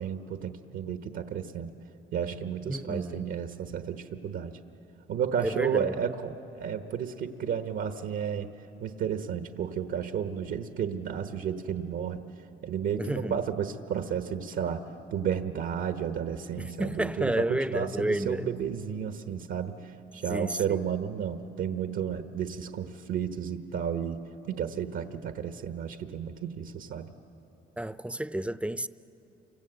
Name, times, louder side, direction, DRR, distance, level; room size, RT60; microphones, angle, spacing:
voice 1, 0.0-1.7 2.1-4.6 5.1-8.5 8.8-12.2 12.6-14.8 15.1-19.8 20.1-24.2 24.5-27.1, right 8 dB, 80° right, 1.2 m, -32 dB
voice 2, 2.7-3.3 5.4-6.0 13.0-13.3 16.6-18.5 20.3-20.8 27.8-28.9, right 1 dB, 5° right, 0.5 m, -31 dB
28.5 x 25.0 x 8.0 m
cardioid pair, 90°, 20 cm